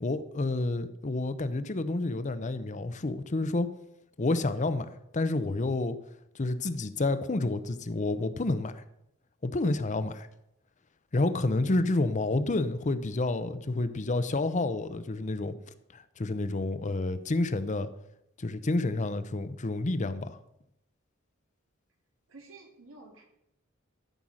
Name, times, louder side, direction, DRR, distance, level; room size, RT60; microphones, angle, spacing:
voice 1, 0.0-3.7 4.2-4.9 5.1-6.0 6.3-8.8 9.4-10.3 11.1-15.6 15.9-17.9 18.4-20.4, left 2 dB, 35° left, 0.6 m, -29 dB
voice 2, 22.3-23.3, right 3 dB, 85° right, 2.6 m, -51 dB
13.0 x 5.5 x 6.2 m
head